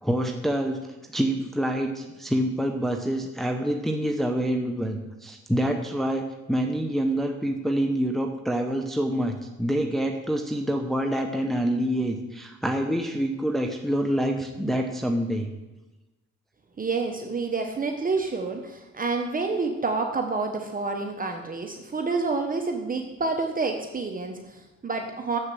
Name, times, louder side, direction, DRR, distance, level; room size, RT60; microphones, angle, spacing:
voice 1, 0.0-0.8 1.1-15.5, equal, ahead, 3 dB, 0.9 m, -26 dB
voice 2, 16.8-25.4, right 4 dB, 30° right, 4 dB, 1.0 m, -28 dB
7.4 x 6.6 x 7.5 m, 1.1 s
cardioid pair, 90°, 30 cm